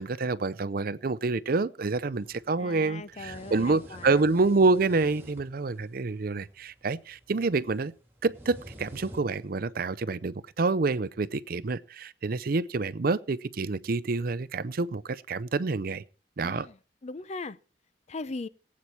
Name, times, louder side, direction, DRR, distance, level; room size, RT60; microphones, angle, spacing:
voice 1, 0.0-7.9 8.2-16.0 16.4-16.7, right 3 dB, 55° right, 0.6 m, -27 dB
sound 1, 2.1-9.6, equal, 15° right, 2.4 m, -50 dB
voice 2, 2.6-4.3 16.4-17.6 18.1-18.5, left 3 dB, 40° left, 0.5 m, -39 dB
19.0 x 8.6 x 4.6 m
head